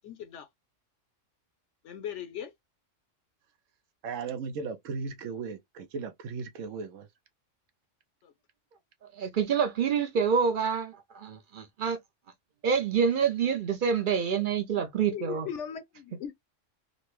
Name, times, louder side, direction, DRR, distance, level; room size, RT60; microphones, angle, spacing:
voice 1, 0.0-0.5 1.8-2.5 8.2-8.3 15.1-16.3, left 9 dB, 70° left, 0.9 m, -38 dB
voice 2, 4.0-7.1, right 5 dB, 80° right, 1.1 m, -36 dB
voice 3, 9.2-12.0 12.6-15.5, right 6 dB, 55° right, 0.6 m, -27 dB
3.9 x 2.2 x 3.1 m
omnidirectional pair, 1.3 m